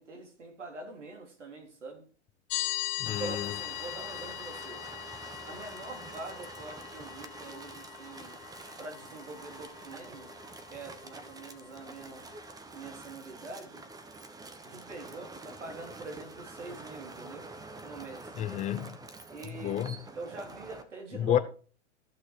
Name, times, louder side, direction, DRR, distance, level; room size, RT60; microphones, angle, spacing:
voice 1, 0.0-2.0 3.1-4.8 5.5-8.4 8.8-10.3 10.7-12.3 12.7-13.8 14.6-17.5 17.8-18.3 19.3-19.8 20.2-21.4, right 3 dB, 90° right, 3.9 m, -44 dB
sound 1, 2.5-12.5, left 17 dB, 45° left, 1.4 m, -41 dB
voice 2, 3.0-3.6 18.4-19.0 19.5-20.0 21.1-21.4, left 11 dB, 20° left, 0.6 m, -30 dB
sound 2, 3.1-20.8, right 2 dB, 10° right, 1.1 m, -47 dB
14.5 x 6.2 x 4.7 m
hypercardioid pair, 120°, 35 cm